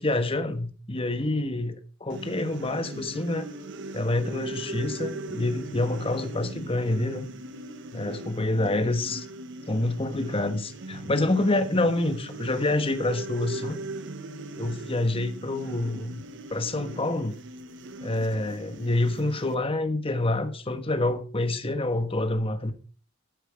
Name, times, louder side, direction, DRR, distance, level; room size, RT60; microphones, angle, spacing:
voice 1, 0.0-3.5 3.9-7.3 7.9-9.3 9.7-13.8 14.6-16.2 16.5-17.3 18.0-22.7, left 2 dB, 25° left, 1.3 m, -27 dB
sound 1, 2.1-19.5, right 2 dB, 60° right, 1.2 m, -39 dB
12.5 x 9.2 x 5.0 m
head